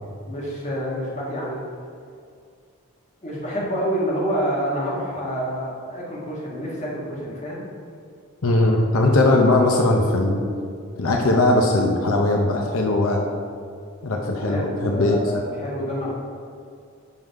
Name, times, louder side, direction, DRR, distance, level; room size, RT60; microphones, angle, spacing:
voice 1, 0.2-1.6 3.2-7.7 14.4-16.1, equal, 30° left, -4 dB, 1.6 m, -27 dB
voice 2, 8.4-10.4 11.0-13.2 14.0-15.1, left 2 dB, 80° left, 1 dB, 0.8 m, -19 dB
11.0 x 3.9 x 4.6 m, 2.3 s
head